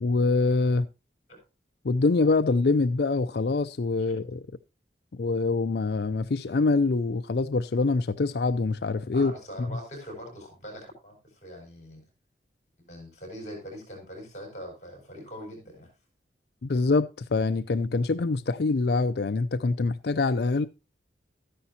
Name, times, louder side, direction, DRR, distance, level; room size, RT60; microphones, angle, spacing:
voice 1, 0.0-0.9 1.8-4.4 5.2-9.3 16.6-20.7, left 3 dB, 60° left, 0.5 m, -25 dB
voice 2, 9.1-12.0 12.8-15.9, equal, 40° left, 5.6 m, -42 dB
13.5 x 10.0 x 2.8 m
head